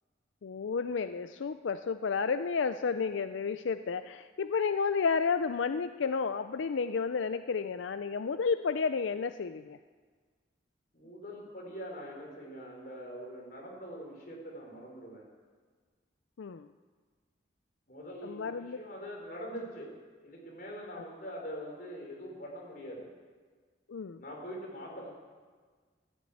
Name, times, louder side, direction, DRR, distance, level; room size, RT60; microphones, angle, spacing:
voice 1, 0.4-9.8 16.4-16.7 18.2-18.8 20.9-21.0 23.9-24.2, left 5 dB, 90° left, 10 dB, 0.5 m, -31 dB
voice 2, 10.9-15.2 17.9-19.9 20.2-23.1 24.2-25.1, equal, 45° left, -2 dB, 4.5 m, -43 dB
14.0 x 12.0 x 8.6 m, 1.5 s
head